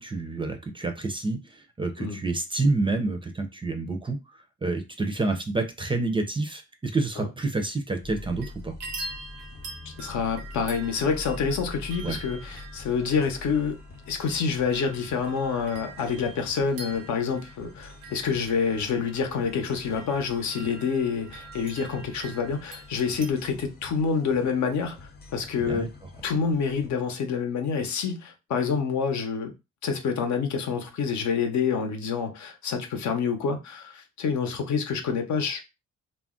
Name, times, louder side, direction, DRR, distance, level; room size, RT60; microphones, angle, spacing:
voice 1, 0.0-4.2 4.6-8.7 12.0-12.2 25.6-25.9, right 3 dB, 15° right, 0.5 m, -28 dB
sound 1, 8.0-26.9, left 2 dB, 30° left, 0.6 m, -45 dB
sound 2, 8.1-8.5 8.8-23.3, right 3 dB, 85° right, 0.7 m, -44 dB
voice 2, 10.0-13.8 14.1-25.9 26.2-29.5 29.8-35.6, left 6 dB, 70° left, 0.8 m, -27 dB
2.4 x 2.0 x 3.6 m
cardioid pair, 90°, 30 cm